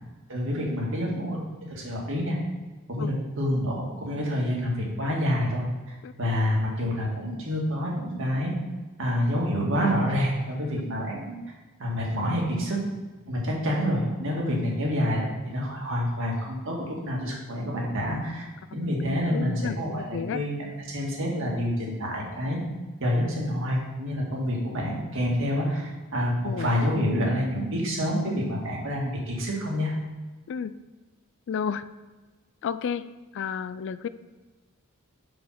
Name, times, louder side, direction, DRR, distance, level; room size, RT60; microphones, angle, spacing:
voice 1, 0.3-1.4 1.7-2.4 2.9-8.5 9.0-11.4 11.8-12.8 13.3-18.5 18.7-22.6 23.0-29.9, equal, 60° right, -2 dB, 1.9 m, -27 dB
voice 2, 19.3-20.4 26.4-26.7 27.0-27.1 30.5-30.7 31.5-31.8 32.6-33.1 33.3-34.1, left 7 dB, 55° left, 13 dB, 0.3 m, -31 dB
5.6 x 5.3 x 5.9 m, 1.2 s
head